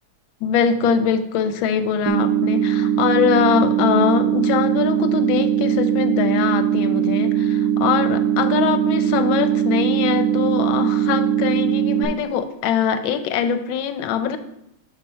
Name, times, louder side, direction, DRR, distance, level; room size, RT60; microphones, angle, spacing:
voice 1, 0.4-14.4, left 7 dB, 80° left, 9 dB, 1.3 m, -22 dB
sound 1, 2.1-12.1, right 10 dB, 70° right, 1.0 m, -20 dB
6.0 x 4.2 x 5.5 m, 0.81 s
omnidirectional pair, 2.2 m